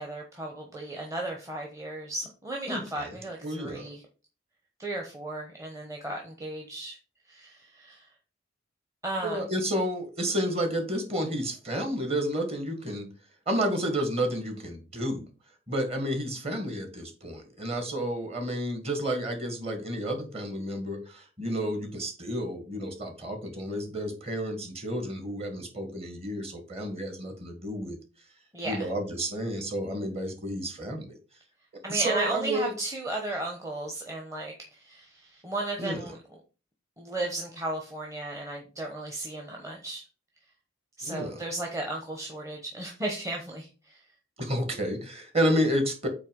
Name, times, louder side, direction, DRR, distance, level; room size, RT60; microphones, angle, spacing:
voice 1, 0.0-4.0 4.8-7.0 7.3-8.1 9.0-9.5 28.5-28.9 31.8-36.2 37.0-40.0 41.0-44.0, right 2 dB, 15° right, 0 dB, 1.0 m, -35 dB
voice 2, 2.7-3.2 3.4-3.9 9.2-13.1 13.5-15.3 15.7-28.0 28.6-31.2 31.9-32.7 35.8-36.0 41.1-41.4 44.4-46.1, equal, 30° right, 4 dB, 1.9 m, -30 dB
8.4 x 3.2 x 5.3 m, 0.34 s
head